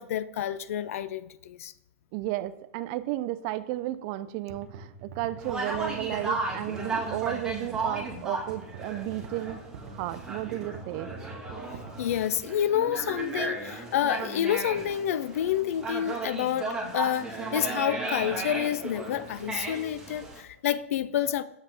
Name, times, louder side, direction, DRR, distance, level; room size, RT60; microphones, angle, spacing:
voice 1, 0.0-1.7 12.0-21.4, left 10 dB, 70° left, 0.4 m, -29 dB
voice 2, 2.1-9.6 9.9-11.1, right 15 dB, 45° right, 0.4 m, -33 dB
sound 1, 4.5-12.5, right 5 dB, 60° right, 0.9 m, -44 dB
Conversation, 5.4-20.4, right 3 dB, 10° right, 1.5 m, -35 dB
6.7 x 5.7 x 3.4 m
hypercardioid pair, 130°, 8 cm